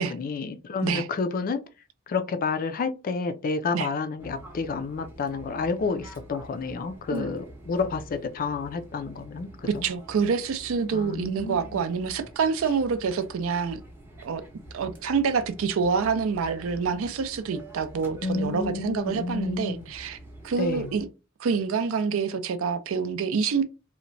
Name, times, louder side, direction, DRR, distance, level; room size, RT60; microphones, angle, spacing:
voice 1, 0.0-1.6 2.1-9.9 10.9-11.8 18.2-19.9 20.6-20.9, left 4 dB, 40° left, 0.3 m, -30 dB
Fixed-wing aircraft airplane, 4.2-21.1, right 1 dB, 10° right, 0.6 m, -47 dB
voice 2, 9.7-13.8 14.2-14.4 14.7-20.2 20.4-21.1 21.4-23.6, right 5 dB, 65° right, 0.4 m, -27 dB
2.8 x 2.1 x 2.5 m
head